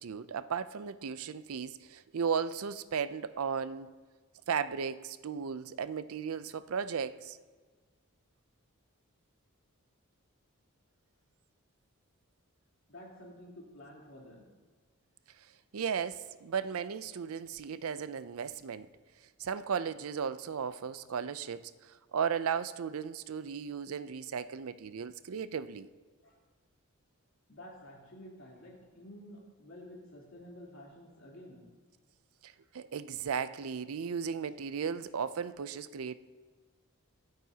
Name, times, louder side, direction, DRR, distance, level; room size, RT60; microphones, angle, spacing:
voice 1, 0.0-3.9 4.5-7.4 15.7-18.9 19.4-25.9 32.4-36.1, right 6 dB, 80° right, 14 dB, 0.5 m, -35 dB
voice 2, 12.9-14.5 26.2-26.4 27.5-31.7, left 1 dB, 60° left, -4 dB, 3.4 m, -51 dB
23.0 x 8.8 x 2.8 m, 1.4 s
head